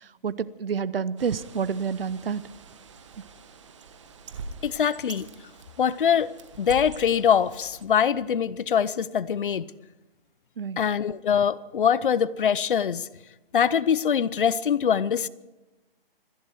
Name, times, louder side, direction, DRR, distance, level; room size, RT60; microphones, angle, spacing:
voice 1, 0.2-2.4 10.6-10.8, right 6 dB, 75° right, 0.9 m, -28 dB
Bird, 1.2-7.8, right 4 dB, 30° right, 1.3 m, -44 dB
voice 2, 4.6-5.3 5.8-9.7 10.8-13.1 13.5-15.3, left 8 dB, 60° left, 0.7 m, -23 dB
26.0 x 11.5 x 4.6 m
hypercardioid pair, 170°, 29 cm